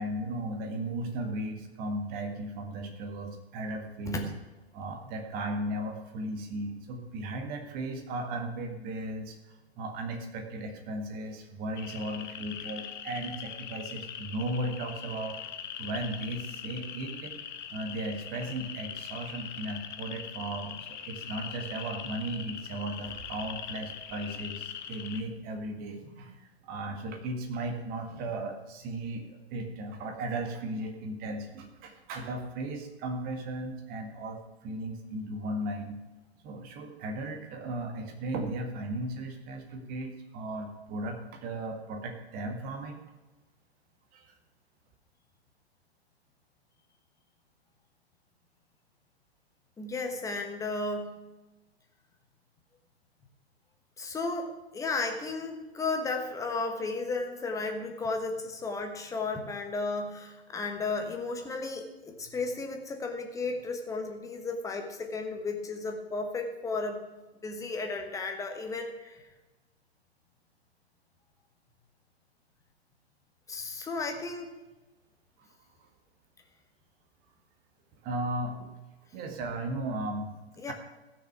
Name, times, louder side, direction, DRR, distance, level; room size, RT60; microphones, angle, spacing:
voice 1, 0.0-4.3 4.7-15.4 15.8-17.3 17.7-36.0 36.4-43.0 44.1-44.3 75.4-75.5 78.0-78.7 79.1-80.7, right 1 dB, 30° right, 5 dB, 1.7 m, -36 dB
sound 1, 11.8-25.2, left 9 dB, 45° left, 1.0 m, -42 dB
voice 2, 49.8-51.2 54.0-67.0 67.4-69.2 73.5-74.5 80.6-80.7, left 3 dB, 10° left, 4 dB, 1.3 m, -34 dB
15.0 x 6.6 x 5.9 m, 1.1 s
figure-of-eight pair, 115°, 32 cm